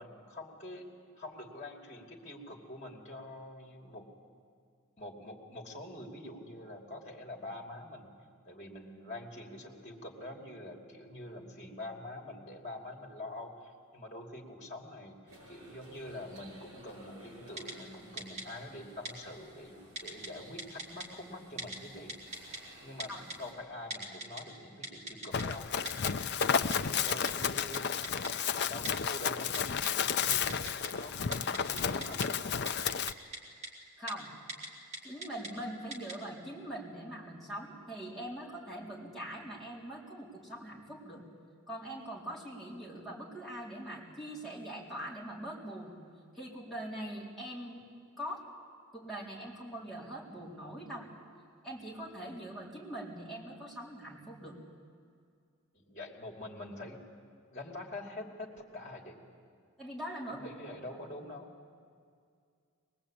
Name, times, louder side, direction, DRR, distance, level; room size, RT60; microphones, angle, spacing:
voice 1, 0.0-4.1 5.0-8.1 8.5-22.1 22.8-23.1 23.4-25.7 26.1-32.6 55.7-57.0 57.5-59.2 60.3-61.5, left 1 dB, 35° left, 1 dB, 2.7 m, -46 dB
sound 1, 15.3-23.5, right 1 dB, 75° right, 7.0 m, -56 dB
Typing, 17.6-17.7 18.2-18.4 19.1-19.2 20.0-20.3 20.6-21.1 21.6-21.8 22.1-22.6 23.0-23.4 23.9-24.4 24.8-25.4 25.9-26.1 26.4-26.5 26.7-26.8 27.1-27.5 27.7-27.8 28.0-28.3 28.8-28.9 29.5-29.9 30.3-30.9 31.2-32.3 32.7-33.4 33.6-33.7 34.1-34.2 34.5-34.7 34.9-35.5 35.9-36.1, right 2 dB, 30° right, 3.0 m, -40 dB
Run, 25.3-33.1, left 7 dB, 50° left, 0.6 m, -32 dB
voice 2, 34.0-34.3 35.0-41.2 41.7-46.0 46.3-47.8 48.2-48.5 48.9-51.1 51.6-54.6 59.8-60.8, right 1 dB, ahead, -6 dB, 4.2 m, -42 dB
22.5 x 20.5 x 8.7 m, 2.2 s
head